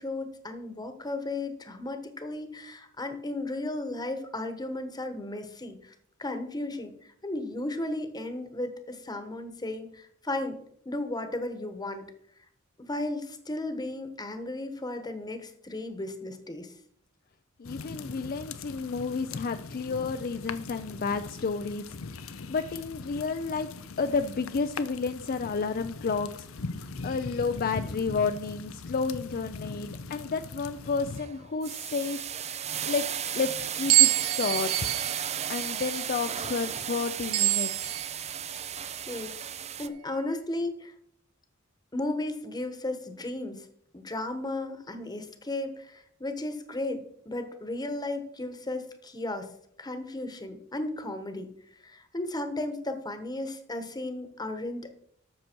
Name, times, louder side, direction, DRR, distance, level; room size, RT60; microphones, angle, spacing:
voice 1, 0.0-5.9 6.2-10.6 10.8-12.1 12.8-16.7 38.7-39.3 39.8-40.9 41.9-43.7 43.9-49.5 49.8-51.5 51.8-54.9, left 2 dB, 20° left, 8 dB, 1.2 m, -35 dB
sound 1, 17.6-31.2, left 4 dB, 75° left, 0.7 m, -41 dB
voice 2, 17.6-23.7 24.0-26.5 26.7-32.2 32.8-33.1 33.3-34.9 35.5-37.9, left 4 dB, 45° left, 8 dB, 0.5 m, -31 dB
sound 2, 30.1-30.4 30.9-39.9, right 9 dB, 30° right, 0.5 m, -35 dB
sound 3, 33.9-38.7, right 23 dB, 85° right, 0.3 m, -27 dB
13.0 x 6.6 x 4.5 m, 0.69 s
head